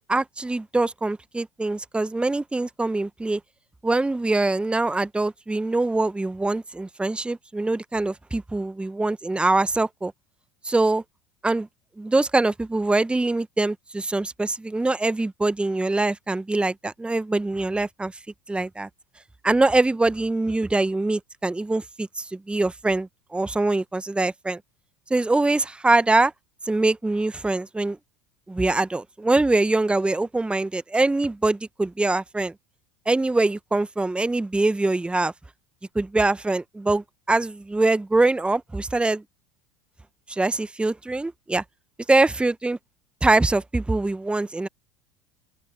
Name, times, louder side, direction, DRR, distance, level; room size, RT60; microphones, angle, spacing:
voice 1, 0.0-3.4 3.8-10.1 10.6-11.0 11.4-11.7 12.0-18.1 18.5-18.9 19.4-24.6 25.1-26.3 26.6-28.0 28.5-32.5 33.1-35.3 35.9-39.2 40.3-41.6 42.1-42.8 43.2-44.7, right 2 dB, 10° right, 1.2 m, -23 dB
open air
figure-of-eight pair, 75°, 13 cm